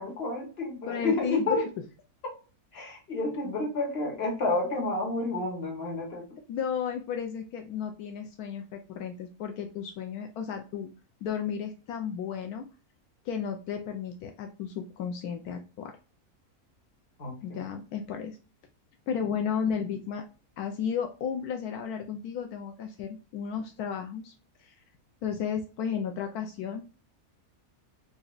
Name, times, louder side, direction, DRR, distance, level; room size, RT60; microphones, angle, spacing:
voice 1, 0.0-1.7 2.7-6.3 17.2-17.6, left 2 dB, 45° left, 0 dB, 1.4 m, -30 dB
voice 2, 0.9-1.6 6.5-10.9 11.2-12.7 13.2-16.0 17.4-18.4 19.1-20.2 20.6-24.3 24.6-24.7 25.2-26.8, left 7 dB, 80° left, 4 dB, 1.1 m, -33 dB
4.0 x 2.6 x 2.3 m, 0.34 s
omnidirectional pair, 1.6 m